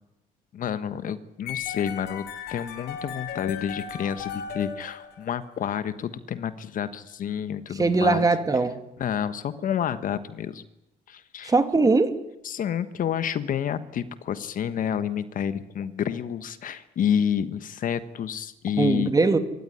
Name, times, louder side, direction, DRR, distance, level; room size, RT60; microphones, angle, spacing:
voice 1, 0.5-2.2 2.5-8.2 9.0-10.6 11.1-11.5 12.4-19.1, left 8 dB, 55° left, 13 dB, 1.3 m, -29 dB
sound 1, 1.5-5.6, left 7 dB, 75° left, 5.4 m, -36 dB
voice 2, 7.8-8.7 11.4-12.1 18.8-19.4, right 3 dB, 20° right, 9 dB, 2.3 m, -20 dB
26.0 x 14.0 x 10.0 m, 0.91 s
cardioid pair, 110°, 17 cm